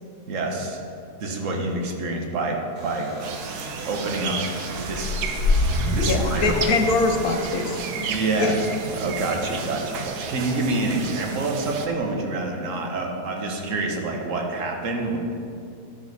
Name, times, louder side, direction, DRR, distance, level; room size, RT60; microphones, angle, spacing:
voice 1, 0.3-0.8 1.2-3.1 3.8-4.4 4.7-5.2 5.9-6.5 8.1-8.6 8.9-15.2, right 2 dB, 60° right, 1 dB, 1.4 m, -27 dB
sound 1, 2.7-8.9, right 1 dB, 40° right, 1.8 m, -45 dB
sound 2, 3.2-11.9, right 5 dB, 90° right, 1.3 m, -33 dB
sound 3, 4.7-7.4, left 2 dB, 60° left, 1.5 m, -24 dB
voice 2, 6.0-8.1 8.4-8.6, left 3 dB, 80° left, 5 dB, 1.3 m, -23 dB
11.5 x 6.3 x 4.1 m, 2.5 s
omnidirectional pair, 1.6 m